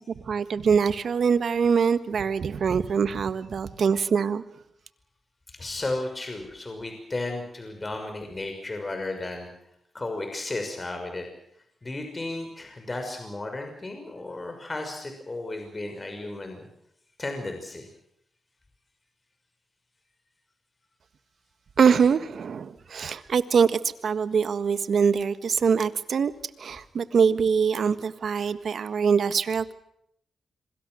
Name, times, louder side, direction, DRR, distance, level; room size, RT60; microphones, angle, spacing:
voice 1, 0.3-4.4 21.8-26.3 26.6-29.7, right 6 dB, 70° right, 12 dB, 1.6 m, -23 dB
voice 2, 5.5-9.5 9.9-11.3 11.8-16.7 17.2-17.9, left 2 dB, 30° left, 4 dB, 6.0 m, -34 dB
26.5 x 24.0 x 6.4 m, 0.74 s
cardioid pair, 60°, 0 cm